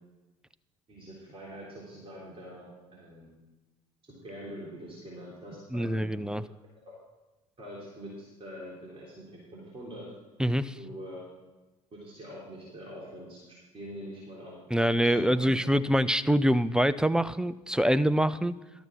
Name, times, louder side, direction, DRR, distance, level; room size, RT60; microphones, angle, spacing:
voice 1, 0.9-3.3 4.1-6.1 6.8-6.9 7.6-10.1 10.8-11.3 11.9-14.6 15.0-15.5, equal, 30° right, -6 dB, 3.5 m, -44 dB
voice 2, 5.7-6.4 10.4-10.8 14.7-18.6, equal, 5° right, 13 dB, 0.4 m, -25 dB
12.5 x 6.9 x 6.3 m, 1.1 s
figure-of-eight pair, 65°, 18 cm